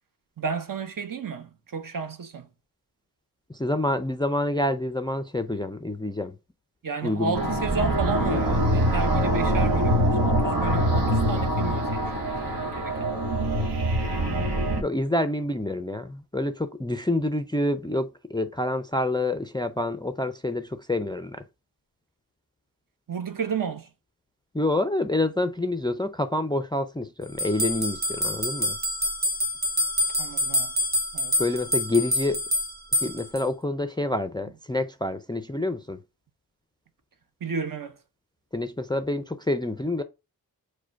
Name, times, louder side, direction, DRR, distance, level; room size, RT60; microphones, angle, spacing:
voice 1, 0.4-2.5 6.8-13.1 23.1-23.9 30.2-30.7 31.1-31.4 37.4-38.0, right 5 dB, 55° right, 0.8 m, -32 dB
voice 2, 3.5-6.4 7.0-7.4 14.8-21.4 24.5-28.8 31.4-32.4 33.0-36.0 38.5-40.0, left 1 dB, 10° left, 0.4 m, -27 dB
sound 1, 7.3-14.8, right 1 dB, 75° right, 1.2 m, -24 dB
sound 2, 27.4-33.4, left 1 dB, 25° right, 1.0 m, -26 dB
4.8 x 2.2 x 4.4 m
wide cardioid pair, 85°, 39 cm